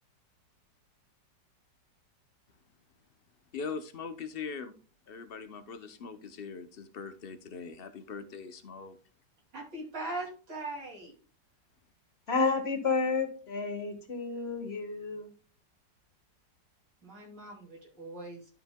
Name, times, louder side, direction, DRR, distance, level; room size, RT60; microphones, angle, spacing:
voice 1, 3.5-4.7 5.1-9.0, left 5 dB, 70° left, 0.5 m, -41 dB
voice 2, 9.5-11.1 17.0-18.4, right 2 dB, 70° right, 3.1 m, -40 dB
voice 3, 12.3-15.3, left 4 dB, 35° left, 1.8 m, -30 dB
12.5 x 7.0 x 2.2 m
omnidirectional pair, 1.9 m